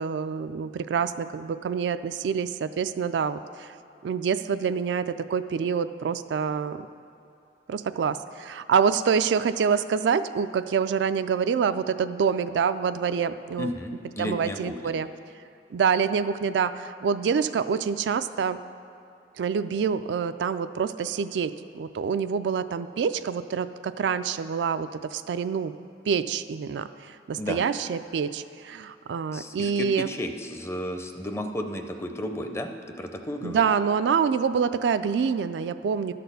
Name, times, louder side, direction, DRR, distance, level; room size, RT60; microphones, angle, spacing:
voice 1, 0.0-3.7 4.0-6.9 7.7-13.7 14.2-15.1 15.7-18.6 19.4-25.7 26.1-30.1 33.4-36.1, right 6 dB, 80° right, 12 dB, 0.3 m, -26 dB
voice 2, 13.6-14.9 27.4-27.6 29.3-32.7 33.0-33.7, left 1 dB, 15° left, 6 dB, 0.5 m, -33 dB
12.0 x 4.2 x 6.7 m, 2.7 s
head